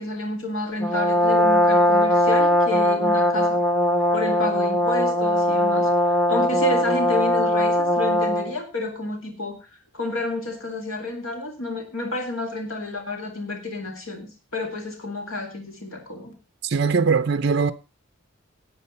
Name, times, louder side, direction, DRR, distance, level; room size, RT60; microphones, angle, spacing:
voice 1, 0.0-3.6 4.1-9.6 9.9-16.3, left 2 dB, 85° left, 2.4 m, -30 dB
Brass instrument, 0.8-8.6, left 1 dB, 5° left, 1.0 m, -20 dB
voice 2, 16.6-17.7, right 5 dB, 55° right, 0.5 m, -21 dB
11.5 x 7.8 x 5.3 m
head